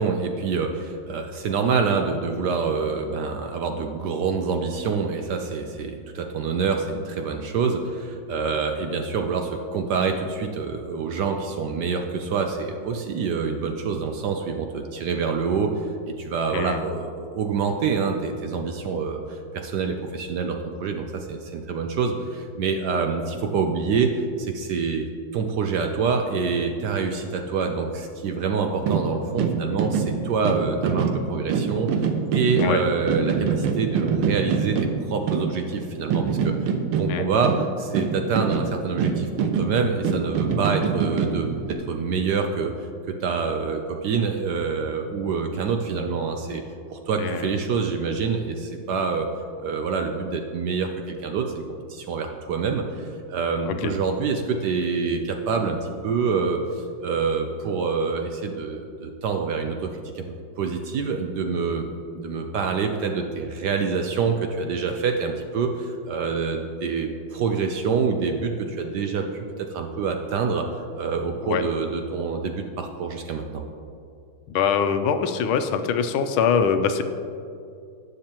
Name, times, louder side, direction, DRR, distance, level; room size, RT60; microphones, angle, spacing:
voice 1, 0.0-25.1 25.3-36.6 37.0-46.6 46.9-49.3 49.6-51.6 51.9-61.8 62.1-73.6, right 5 dB, 70° right, 4 dB, 1.0 m, -26 dB
voice 2, 16.5-16.8 32.6-32.8 37.1-37.3 47.2-47.5 53.6-53.9 71.4-71.6 74.5-77.0, left 7 dB, 85° left, 9 dB, 1.5 m, -23 dB
sound 1, 28.8-35.8 36.1-41.7, right 6 dB, 90° right, 1.6 m, -25 dB
18.5 x 6.6 x 2.9 m, 2.4 s
omnidirectional pair, 2.3 m